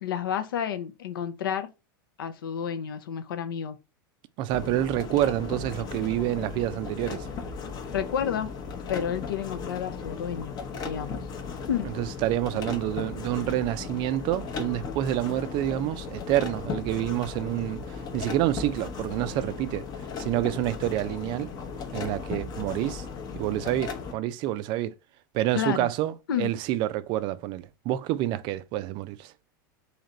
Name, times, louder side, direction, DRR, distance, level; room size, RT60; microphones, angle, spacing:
voice 1, 0.0-1.7 2.2-3.8 7.9-8.5 8.9-10.6 10.8-11.2 11.7-11.9 25.5-25.9 26.3-26.5, left 8 dB, 85° left, 0.6 m, -30 dB
voice 2, 4.4-7.3 12.0-19.8 20.2-21.5 21.9-23.1 23.3-24.9 25.3-29.3, right 14 dB, 45° right, 0.3 m, -28 dB
sound 1, 4.5-24.1, left 5 dB, 35° left, 0.7 m, -36 dB
3.2 x 2.8 x 3.7 m
hypercardioid pair, 115°, 11 cm